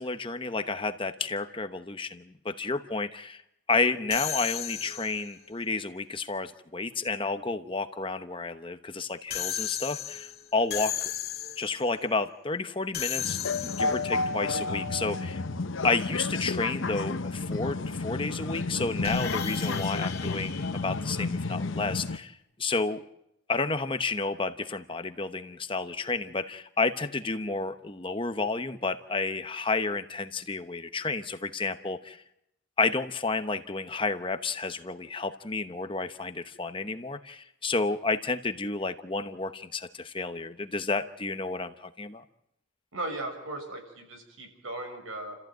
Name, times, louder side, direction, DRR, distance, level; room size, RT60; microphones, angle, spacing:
voice 1, 0.0-3.4 3.7-11.1 11.6-15.4 15.8-23.0 23.5-32.2 32.8-42.2, left 3 dB, 25° left, 9 dB, 1.0 m, -31 dB
sound 1, 4.1-5.4 9.3-11.8 12.9-14.2 19.0-21.6, left 10 dB, 50° left, 2.2 m, -35 dB
sound 2, 13.2-22.2, left 3 dB, 70° left, 0.9 m, -31 dB
voice 2, 42.9-45.4, right 2 dB, 85° right, 4 dB, 6.7 m, -37 dB
29.5 x 14.5 x 9.1 m, 0.80 s
head